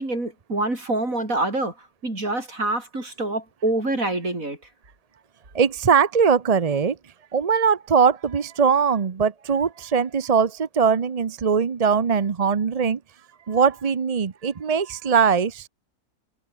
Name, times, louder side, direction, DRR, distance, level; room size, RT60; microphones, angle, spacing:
voice 1, 0.0-4.6, right 2 dB, 60° right, 6.2 m, -26 dB
voice 2, 5.5-7.0 7.3-13.0 13.5-15.7, right 6 dB, 40° right, 0.6 m, -21 dB
omnidirectional pair, 1.6 m